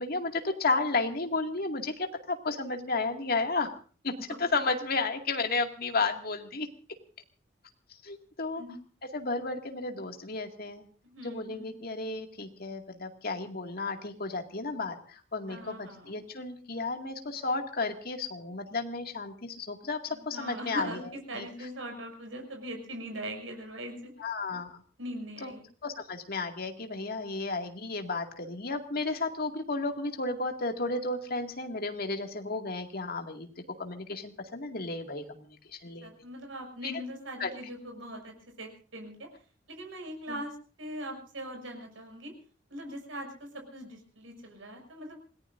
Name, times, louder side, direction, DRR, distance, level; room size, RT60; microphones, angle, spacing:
voice 1, 0.0-3.8 4.0-6.7 8.0-8.6 9.1-10.8 11.2-21.0 21.3-21.5 24.2-24.8 25.4-25.5 25.8-33.5 33.8-36.1 36.8-36.9 37.4-37.6 40.3-40.4, left 3 dB, 50° left, 4 dB, 2.2 m, -33 dB
voice 2, 11.0-11.7 15.5-16.1 20.1-24.1 25.0-25.6 36.0-39.3 39.7-42.3 42.7-45.2, equal, 85° right, 3 dB, 6.5 m, -41 dB
27.0 x 19.0 x 2.6 m, 0.40 s
head